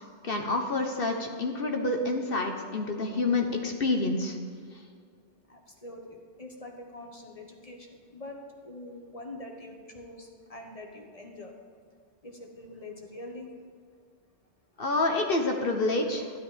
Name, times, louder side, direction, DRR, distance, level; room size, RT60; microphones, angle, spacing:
voice 1, 0.2-4.4 14.8-16.4, left 2 dB, 55° left, 3 dB, 1.4 m, -28 dB
voice 2, 5.5-8.4 8.6-11.5 12.2-13.5, left 1 dB, 30° left, 1 dB, 1.5 m, -44 dB
13.0 x 11.5 x 5.2 m, 2.1 s
omnidirectional pair, 1.2 m